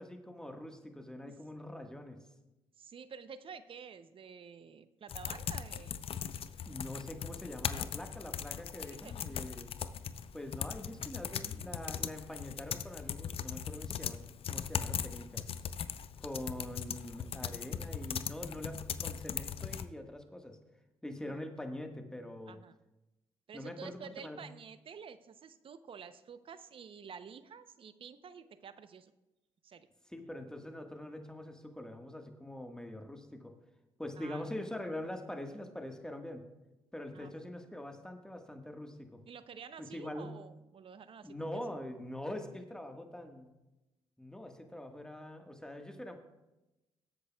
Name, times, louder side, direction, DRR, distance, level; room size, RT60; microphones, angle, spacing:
voice 1, 0.0-2.2 6.7-9.7 10.3-14.2 14.5-15.4 16.2-20.6 21.0-22.6 23.5-24.4 30.1-33.5 34.0-36.4 36.9-39.2 39.8-40.3 41.2-43.5 44.2-46.2, left 1 dB, 5° left, 4 dB, 1.5 m, -44 dB
voice 2, 2.8-6.1 8.9-9.1 21.3-21.4 22.5-22.7 23.5-29.1 29.6-29.9 34.2-34.4 37.1-37.3 39.3-41.3, right 6 dB, 55° right, 12 dB, 0.7 m, -50 dB
sound 1, 5.1-19.9, left 8 dB, 60° left, 0.5 m, -39 dB
18.0 x 8.2 x 2.3 m, 1.0 s
supercardioid pair, 55°, 11 cm